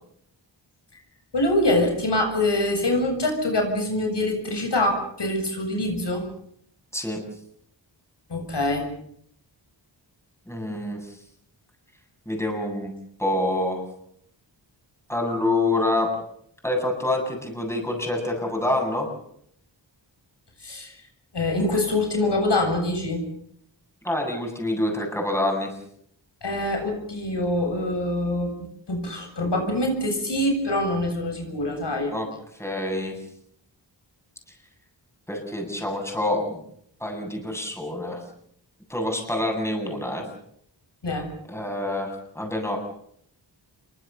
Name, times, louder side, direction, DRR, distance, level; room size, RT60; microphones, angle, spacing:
voice 1, 1.3-6.2 8.3-8.9 20.6-20.9 21.3-23.3 26.4-32.2 41.0-41.3, left 1 dB, 65° left, 3 dB, 7.7 m, -24 dB
voice 2, 10.5-11.2 12.3-12.9 13.2-13.8 15.1-16.1 16.6-19.1 24.0-25.7 32.1-32.3 32.6-33.2 35.3-36.6 37.0-38.2 38.9-40.2 41.5-42.8, left 1 dB, 5° left, 2 dB, 7.9 m, -26 dB
27.5 x 24.5 x 7.1 m, 0.70 s
wide cardioid pair, 90°, 44 cm